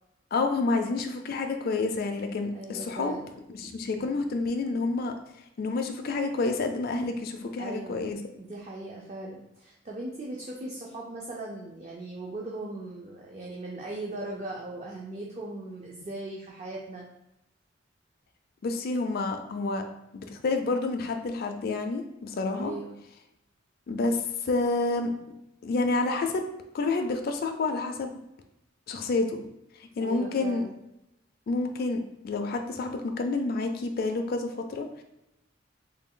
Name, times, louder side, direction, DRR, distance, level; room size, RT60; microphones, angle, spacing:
voice 1, 0.3-3.1 3.5-5.1 5.6-8.2 18.6-19.8 20.1-22.7 23.9-25.1 25.6-26.4 26.7-28.2 28.9-29.4 29.8-30.6 31.5-35.0, left 3 dB, 55° left, 5 dB, 0.4 m, -29 dB
voice 2, 2.5-3.3 3.6-4.0 7.6-17.1 22.5-23.0 30.0-30.8, right 2 dB, 35° right, -3 dB, 0.5 m, -39 dB
3.2 x 2.2 x 3.7 m, 0.87 s
head